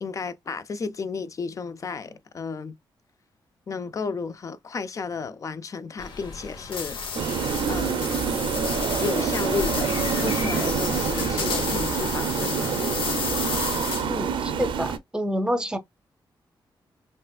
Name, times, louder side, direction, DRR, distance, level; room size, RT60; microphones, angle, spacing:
voice 1, 0.0-2.8 3.7-7.0 7.6-8.1 9.0-12.8, left 4 dB, 40° left, 0.4 m, -33 dB
sound 1, 6.0-12.1, left 4 dB, 60° left, 1.1 m, -37 dB
sound 2, 6.7-14.3, left 5 dB, 90° left, 0.9 m, -32 dB
sound 3, 7.1-15.0, right 6 dB, 80° right, 0.6 m, -27 dB
voice 2, 14.1-15.8, equal, 10° right, 0.8 m, -28 dB
5.4 x 2.4 x 2.4 m
wide cardioid pair, 120°, 8 cm